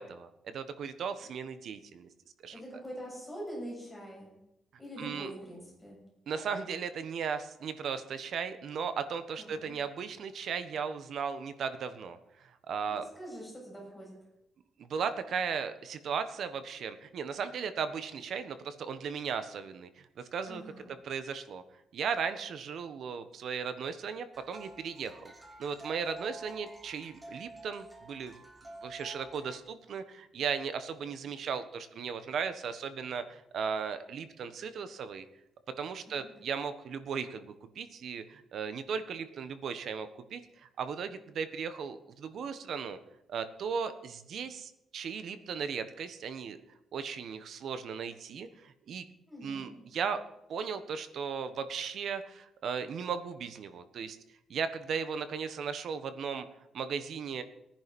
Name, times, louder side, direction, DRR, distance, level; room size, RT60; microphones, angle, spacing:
voice 1, 0.0-2.1 2.4-2.6 5.0-5.3 6.3-13.1 14.8-20.6 21.0-21.6 21.9-25.3 25.6-28.4 28.8-35.3 35.8-43.0 43.3-46.6 46.9-49.0 49.4-50.2 50.5-54.2 54.5-56.5 56.7-57.4, right 6 dB, 60° right, 11 dB, 1.3 m, -36 dB
voice 2, 2.5-4.3 4.8-6.0 9.4-9.8 13.2-14.2 20.5-20.8 36.1-36.3 49.3-49.8, equal, 5° left, -4 dB, 7.4 m, -44 dB
sound 1, 24.3-29.6, right 2 dB, 10° right, 2.3 m, -49 dB
18.5 x 10.5 x 5.4 m, 0.89 s
cardioid pair, 140°, 0 cm